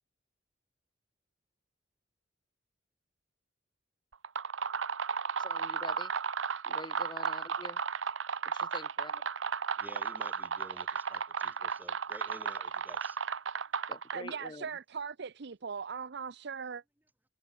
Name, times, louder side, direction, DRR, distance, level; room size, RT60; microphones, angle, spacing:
sound 1, 4.1-14.5, right 6 dB, 80° right, 0.9 m, -34 dB
voice 1, 5.4-6.1 6.6-7.8 8.5-9.3 13.9-14.7, left 3 dB, 25° left, 0.8 m, -46 dB
voice 2, 9.8-13.2, right 1 dB, 10° right, 3.3 m, -51 dB
voice 3, 14.1-16.8, right 6 dB, 65° right, 0.7 m, -39 dB
head